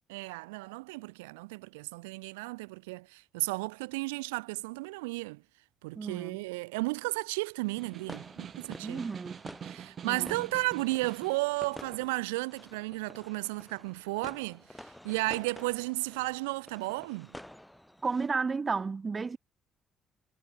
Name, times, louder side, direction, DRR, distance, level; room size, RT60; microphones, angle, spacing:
voice 1, 0.1-5.4 5.8-9.0 9.6-17.3, right 24 dB, 80° right, 1.5 m, -34 dB
voice 2, 6.0-6.4 8.8-9.4 10.1-10.4 18.0-19.4, right 4 dB, 35° right, 0.5 m, -32 dB
Snare drum, 7.6-11.5, right 8 dB, 55° right, 1.7 m, -46 dB
sound 1, 8.0-18.3, left 1 dB, 5° left, 3.1 m, -50 dB
hypercardioid pair, 45°, 0 cm